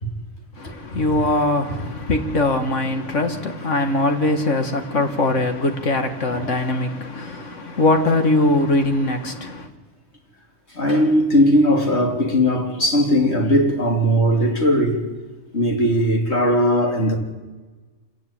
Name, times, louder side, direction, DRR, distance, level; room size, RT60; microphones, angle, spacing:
voice 1, 0.6-9.7, left 2 dB, 85° left, 2.3 m, -21 dB
voice 2, 10.7-15.0 15.5-17.2, equal, 65° left, 3.6 m, -18 dB
26.5 x 17.0 x 9.2 m
omnidirectional pair, 1.2 m